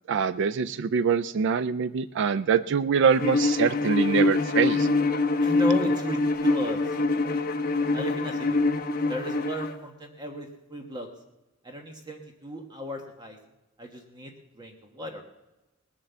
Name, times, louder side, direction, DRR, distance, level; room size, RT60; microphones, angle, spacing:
voice 1, 0.1-4.9, right 6 dB, 60° right, 14 dB, 0.4 m, -24 dB
Bowed string instrument, 3.2-9.8, left 3 dB, 45° left, 1.0 m, -25 dB
voice 2, 5.4-6.9 7.9-8.6 9.1-11.1 11.6-13.4 13.8-15.2, equal, 20° right, 2 dB, 1.3 m, -35 dB
19.5 x 7.4 x 6.9 m, 1.0 s
head